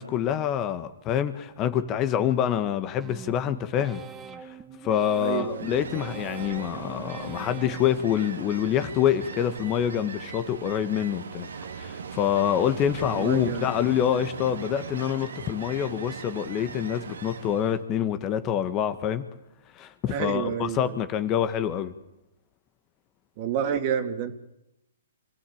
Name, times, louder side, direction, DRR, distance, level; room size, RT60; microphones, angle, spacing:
voice 1, 0.0-4.0 4.8-11.5 11.8-19.2 19.7-21.9, left 10 dB, 25° left, 11 dB, 1.5 m, -26 dB
sound 1, 3.0-8.8 9.2-9.9 10.3-11.0 11.4-12.1 12.5-13.1 13.6-14.2, right 6 dB, 15° right, 1.9 m, -46 dB
Ocean, 5.0-17.8, right 5 dB, 75° right, 2.3 m, -39 dB
voice 2, 5.2-5.7 13.0-13.7 20.1-21.0 23.4-24.3, right 8 dB, 40° right, 8 dB, 2.8 m, -29 dB
26.5 x 16.0 x 8.7 m, 0.89 s
hypercardioid pair, 135°, 0 cm